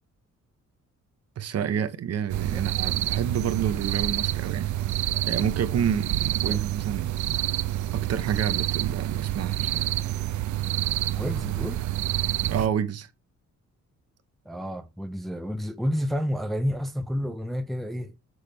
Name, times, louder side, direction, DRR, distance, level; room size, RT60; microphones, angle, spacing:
voice 1, 1.4-4.7 5.3-7.2 7.9-9.9 12.4-13.1, right 8 dB, 55° right, 1.0 m, -29 dB
sound 1, 2.3-12.7, right 14 dB, 75° right, 0.5 m, -28 dB
voice 2, 11.1-11.8 14.5-18.1, equal, ahead, 0.6 m, -30 dB
6.5 x 6.4 x 3.5 m
wide cardioid pair, 165°, 29 cm